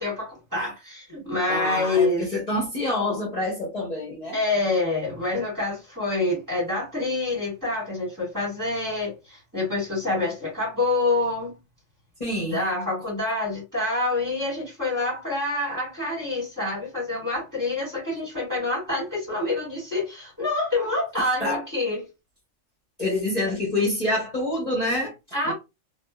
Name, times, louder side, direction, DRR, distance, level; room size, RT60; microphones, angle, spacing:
voice 1, 0.0-2.3 4.3-11.6 12.5-22.1 25.3-25.5, left 2 dB, 15° right, 1.6 m, -27 dB
voice 2, 1.5-4.4 12.2-12.6 21.4-21.6 23.0-25.1 25.4-25.5, left 1 dB, 35° left, 1.1 m, -26 dB
2.6 x 2.4 x 2.3 m
omnidirectional pair, 1.3 m